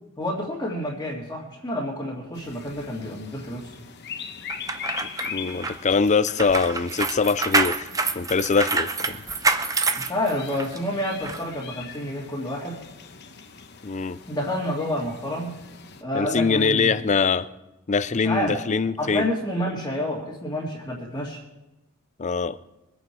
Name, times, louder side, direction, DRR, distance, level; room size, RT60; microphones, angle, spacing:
voice 1, 0.2-3.8 9.9-12.8 14.3-15.6 16.0-16.9 18.1-18.6 19.0-21.4, left 1 dB, 15° left, -6 dB, 2.1 m, -29 dB
sound 1, 2.3-16.0, left 6 dB, 50° left, 1.1 m, -41 dB
sound 2, 4.5-10.8 11.2-11.4, right 3 dB, 15° right, 0.7 m, -26 dB
voice 2, 5.3-7.9 8.1-9.2 13.8-14.2 16.1-17.5 17.9-19.3 22.2-22.6, left 5 dB, 35° left, 14 dB, 0.5 m, -23 dB
23.0 x 8.8 x 4.7 m, 0.95 s
head